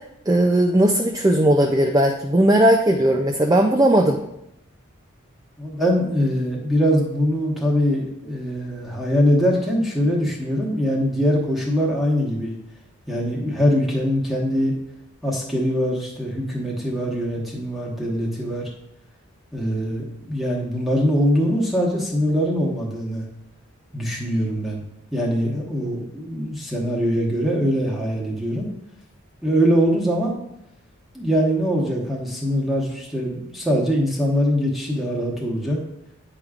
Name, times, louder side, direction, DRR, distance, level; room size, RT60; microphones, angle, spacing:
voice 1, 0.3-4.2, right 1 dB, 15° right, 2 dB, 0.3 m, -17 dB
voice 2, 5.6-12.5 13.1-14.7 15.2-18.7 19.5-23.3 23.9-24.8 25.1-28.7 29.4-30.4 31.1-35.8, equal, ahead, -3 dB, 1.0 m, -22 dB
9.0 x 4.9 x 2.4 m, 0.82 s
head